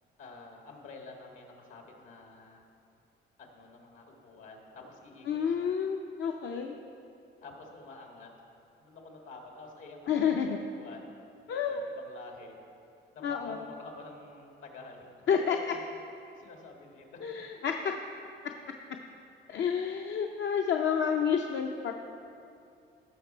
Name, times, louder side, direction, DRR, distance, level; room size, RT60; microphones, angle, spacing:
voice 1, 0.2-2.7 3.4-5.8 7.4-8.3 8.8-11.1 11.6-12.6 13.1-17.4, left 3 dB, 80° left, 1 dB, 1.9 m, -49 dB
voice 2, 5.3-6.8 10.1-10.6 11.5-11.8 13.2-13.6 15.3-15.7 17.2-17.9 19.5-21.9, left 7 dB, 65° left, 2 dB, 0.6 m, -29 dB
16.5 x 5.9 x 4.4 m, 2.6 s
cardioid pair, 90°, 20 cm